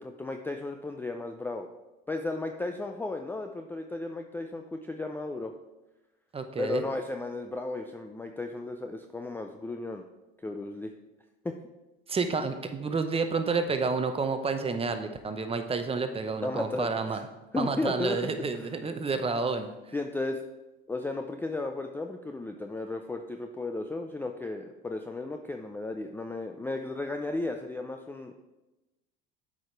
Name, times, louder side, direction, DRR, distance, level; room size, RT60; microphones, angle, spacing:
voice 1, 0.0-1.7 2.1-5.5 6.6-10.0 10.4-10.9 11.4-11.6 16.4-17.2 17.5-18.7 19.9-20.4 20.9-28.3, left 2 dB, 5° left, 5 dB, 0.4 m, -34 dB
voice 2, 6.3-6.8 12.1-17.2 17.6-19.7, right 4 dB, 20° right, 8 dB, 0.8 m, -30 dB
7.8 x 5.0 x 4.5 m, 1.1 s
hypercardioid pair, 90°, 29 cm